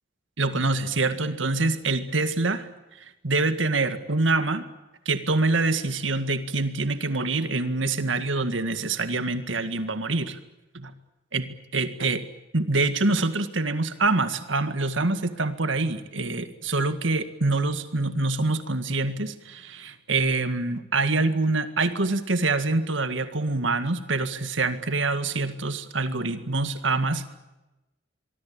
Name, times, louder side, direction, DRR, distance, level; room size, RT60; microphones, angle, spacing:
voice 1, 0.4-2.7 3.0-4.6 5.1-10.4 10.7-10.9 11.3-11.5 11.7-12.2 12.5-27.3, right 3 dB, 90° right, 10 dB, 1.9 m, -25 dB
25.0 x 23.5 x 8.8 m, 1.0 s
head